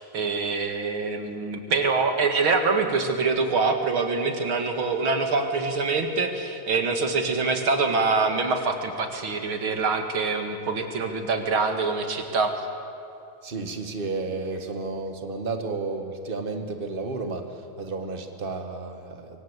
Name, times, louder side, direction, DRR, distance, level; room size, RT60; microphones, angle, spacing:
voice 1, 0.1-12.5, right 4 dB, 80° right, 5 dB, 2.9 m, -25 dB
voice 2, 13.4-19.4, right 3 dB, 25° right, 5 dB, 1.9 m, -32 dB
25.0 x 25.0 x 8.2 m, 2.6 s
omnidirectional pair, 2.2 m